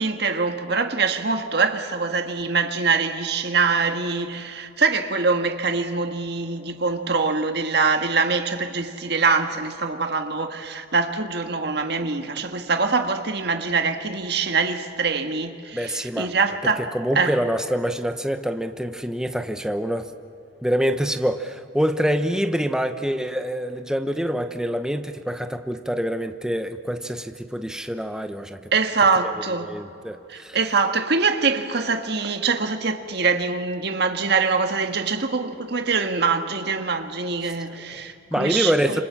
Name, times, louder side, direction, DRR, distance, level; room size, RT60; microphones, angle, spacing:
voice 1, 0.0-16.9 17.1-17.3 28.7-29.7 30.3-39.0, right 4 dB, 55° right, 1.7 m, -24 dB
voice 2, 15.7-16.3 16.9-20.1 20.6-28.7 29.2-29.3 29.6-30.6 37.4-37.5 37.9-38.0 38.3-39.0, equal, 5° right, 1.0 m, -26 dB
27.5 x 26.0 x 7.4 m
head